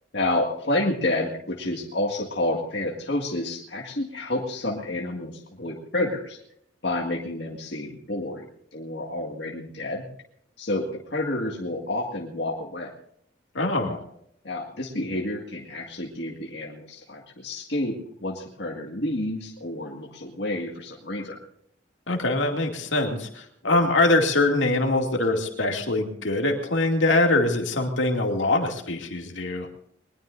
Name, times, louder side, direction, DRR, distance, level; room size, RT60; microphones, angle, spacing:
voice 1, 0.1-6.4 6.8-10.1 10.6-12.9 14.4-21.4 23.6-23.9, left 1 dB, 65° left, -1 dB, 2.0 m, -29 dB
voice 2, 13.5-14.0 22.1-29.7, left 2 dB, 85° left, 2 dB, 2.5 m, -23 dB
22.0 x 20.0 x 2.6 m, 0.70 s
head